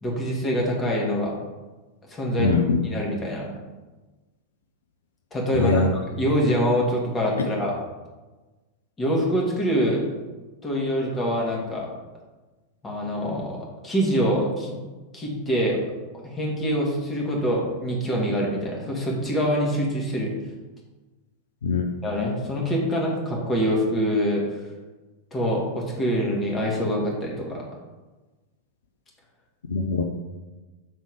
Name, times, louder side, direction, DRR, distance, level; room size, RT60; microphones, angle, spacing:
voice 1, 0.0-1.3 2.1-2.5 2.8-3.5 5.3-7.8 9.0-10.1 10.6-11.9 12.8-13.6 13.8-14.7 15.1-15.8 16.2-20.3 22.0-24.4 25.3-27.6, equal, 20° left, -2 dB, 1.7 m, -25 dB
voice 2, 2.4-2.8 5.5-5.9 21.6-21.9 29.7-30.0, left 4 dB, 65° left, 3 dB, 0.5 m, -22 dB
6.2 x 3.6 x 4.9 m, 1.2 s
figure-of-eight pair, 90°, 0 cm